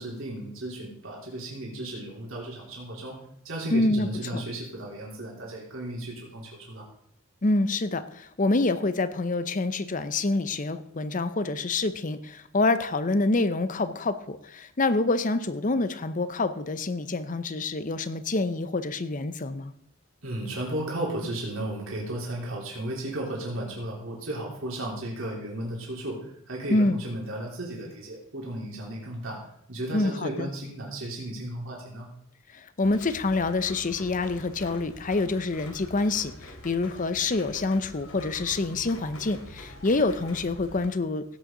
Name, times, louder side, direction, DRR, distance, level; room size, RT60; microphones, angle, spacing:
voice 1, 0.0-3.2 3.4-6.9 20.2-29.4 29.7-32.1, right 1 dB, 75° right, -4 dB, 3.5 m, -34 dB
voice 2, 3.7-4.4 7.4-19.7 26.7-27.0 29.9-30.5 32.5-41.2, left 2 dB, 40° left, 12 dB, 0.7 m, -27 dB
Rain, 32.8-40.8, left 1 dB, 90° left, 2.7 m, -45 dB
16.5 x 8.2 x 3.9 m, 0.71 s
head